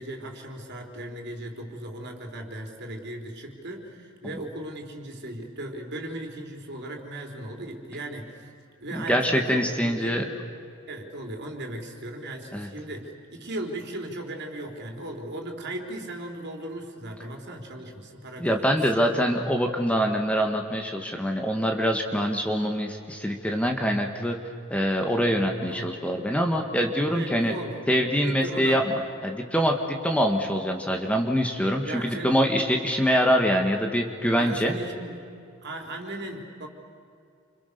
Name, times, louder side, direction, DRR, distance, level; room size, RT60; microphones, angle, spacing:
voice 1, 0.0-8.5 8.8-10.2 10.9-19.0 22.1-22.2 25.7-25.9 27.0-27.8 28.2-28.9 31.8-32.4 34.4-35.3 35.6-36.7, right 1 dB, 55° right, 2 dB, 4.0 m, -37 dB
voice 2, 8.9-10.4 12.5-12.7 18.4-24.4 24.7-27.5 27.9-34.7, equal, 5° left, 3 dB, 1.8 m, -24 dB
29.5 x 27.0 x 6.9 m, 2.5 s
head